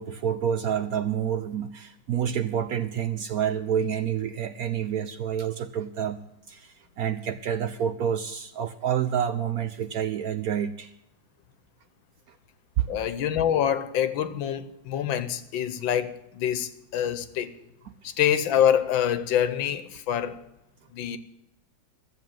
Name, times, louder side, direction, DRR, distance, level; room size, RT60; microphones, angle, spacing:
voice 1, 0.0-6.2 6.5-10.9 12.8-12.9 17.8-17.9, right 9 dB, 70° right, 0.9 m, -28 dB
voice 2, 12.9-17.5 18.0-20.4 20.9-21.2, left 9 dB, 85° left, 1.6 m, -26 dB
14.0 x 7.7 x 9.1 m
omnidirectional pair, 2.1 m